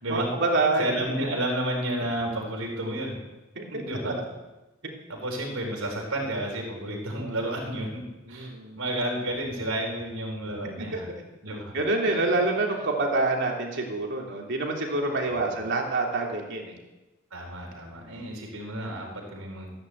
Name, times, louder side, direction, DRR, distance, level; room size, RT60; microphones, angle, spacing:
voice 1, 0.1-0.9 1.2-1.3 3.5-4.1 8.3-8.8 10.8-11.0 11.7-16.7, right 2 dB, 60° right, 0 dB, 3.2 m, -27 dB
voice 2, 0.8-3.2 3.7-4.1 5.1-8.0 8.3-8.5 8.8-11.1 11.4-11.7 15.3-15.6 17.3-19.7, right 1 dB, 80° right, 0 dB, 4.3 m, -31 dB
15.0 x 11.0 x 8.0 m, 1.1 s
head